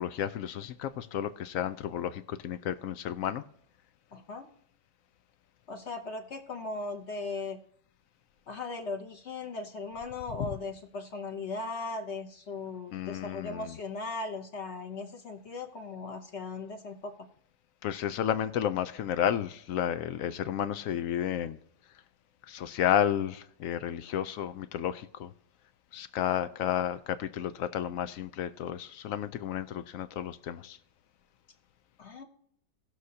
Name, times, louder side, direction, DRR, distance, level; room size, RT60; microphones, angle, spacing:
voice 1, 0.0-3.4 10.4-10.5 12.9-13.7 17.8-21.6 22.5-25.3 25.9-30.8, left 10 dB, 75° left, 0.8 m, -32 dB
voice 2, 4.1-4.5 5.7-7.6 8.5-17.1 32.0-32.2, left 3 dB, 45° left, 1.1 m, -38 dB
18.5 x 6.4 x 2.8 m
omnidirectional pair, 1.8 m